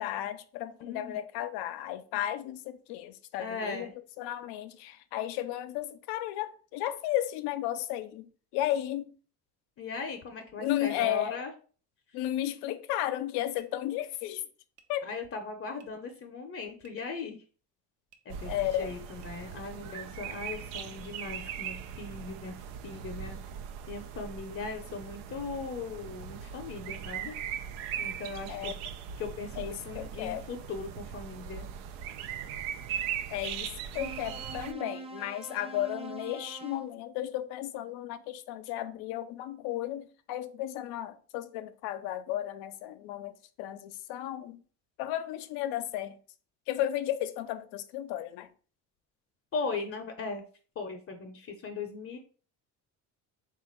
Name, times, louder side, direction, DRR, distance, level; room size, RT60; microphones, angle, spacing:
voice 1, 0.0-3.9 4.2-9.1 10.6-11.4 12.1-14.5 14.9-15.1 18.5-18.9 28.5-28.7 29.6-30.4 33.3-44.6 45.0-46.2 46.7-48.5, left 13 dB, 85° left, 0.5 m, -34 dB
voice 2, 0.8-1.2 3.4-3.9 9.8-11.5 15.0-17.4 18.2-18.5 18.8-23.4 23.9-27.3 28.0-28.7 29.2-31.7 49.5-50.4 50.8-52.2, left 4 dB, 40° left, 0.6 m, -38 dB
sound 1, 13.5-13.7 14.7-14.9 15.8-15.9 16.8-17.2 18.1-18.2 19.2-19.3 20.3-20.4 21.3-21.4, right 6 dB, 55° right, 0.7 m, -60 dB
sound 2, 18.3-34.7, right 8 dB, 85° right, 0.5 m, -39 dB
sound 3, 34.0-36.9, right 3 dB, 15° right, 0.4 m, -43 dB
3.7 x 2.4 x 4.3 m
cardioid pair, 100°, 37 cm